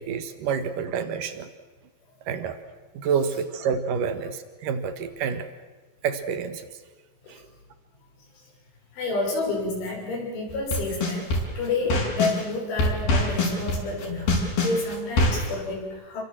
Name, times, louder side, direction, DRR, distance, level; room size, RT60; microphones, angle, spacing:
voice 1, 0.0-1.5 2.3-2.6 2.9-5.5 6.0-6.7 7.3-7.4, right 6 dB, 60° right, 10 dB, 2.5 m, -28 dB
voice 2, 8.9-16.2, left 3 dB, 85° left, -1 dB, 9.0 m, -29 dB
sound 1, 10.5-12.4 12.8-15.5, left 2 dB, 55° left, 6.6 m, -23 dB
29.0 x 23.5 x 7.7 m, 1.2 s
omnidirectional pair, 5.3 m